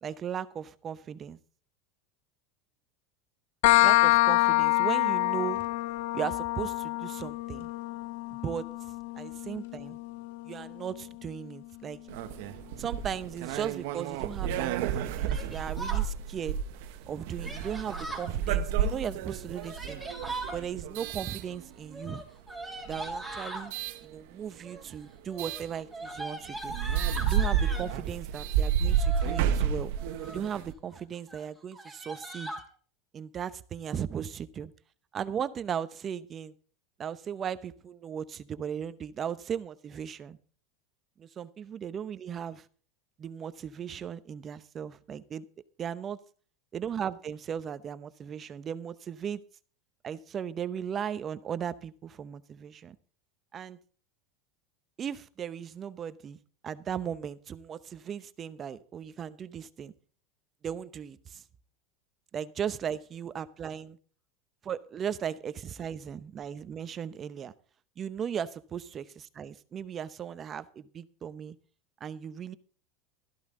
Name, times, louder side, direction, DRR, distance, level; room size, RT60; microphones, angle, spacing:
voice 1, 0.0-1.4 3.8-5.7 6.1-7.7 8.3-8.7 9.2-10.0 10.4-12.0 12.8-16.6 17.1-20.0 20.5-22.2 22.8-23.7 24.0-26.7 27.2-29.9 30.3-32.5 33.1-34.7 35.1-36.5 37.0-40.4 41.2-42.7 43.2-45.4 45.8-46.2 46.7-49.4 50.0-53.0 53.5-53.8 55.0-56.4 56.6-59.9 60.6-61.4 62.3-64.0 64.6-67.5 68.0-71.6 72.0-72.5, right 8 dB, 30° right, 14 dB, 0.8 m, -37 dB
sound 1, 3.6-11.1, left 20 dB, 70° left, 0.7 m, -27 dB
sound 2, 12.1-22.1 22.8-24.0 25.4-25.7 26.2-26.3 26.6-30.7, right 8 dB, 70° right, 1.1 m, -31 dB
Yell, 15.3-16.1 17.4-18.3 19.5-20.6 21.9-23.7 24.5-25.0 25.3-27.9 28.8-29.4 30.0-30.5 30.9-31.0 31.3-31.4 31.7-32.6, right 2 dB, ahead, 3.2 m, -40 dB
13.5 x 12.0 x 3.8 m, 0.43 s
supercardioid pair, 125°, 0 cm